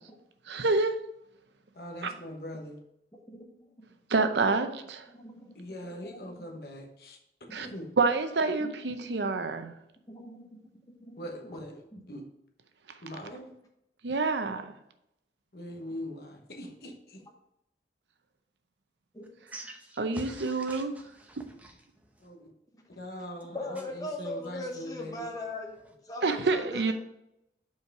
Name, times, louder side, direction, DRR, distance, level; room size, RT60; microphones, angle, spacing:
voice 1, 0.5-0.9 2.0-2.1 4.1-5.1 7.5-7.7 8.0-9.7 14.0-14.7 20.0-20.9 26.2-26.9, right 3 dB, 80° right, 8 dB, 0.7 m, -27 dB
voice 2, 1.7-2.8 5.5-7.2 7.5-7.9 11.2-12.2 13.0-13.5 15.5-17.2 22.2-22.5 23.0-25.3, equal, 60° left, 2 dB, 1.1 m, -42 dB
voice 3, 5.1-5.5 6.0-6.4 8.9-9.4 10.1-10.5 11.0-11.2 11.9-12.0 19.1-19.2 23.5-25.7 26.0-26.9, left 1 dB, 20° left, 1 dB, 1.0 m, -40 dB
voice 4, 19.5-21.7, right 1 dB, 10° right, 3 dB, 0.7 m, -46 dB
5.6 x 4.6 x 4.8 m, 0.82 s
head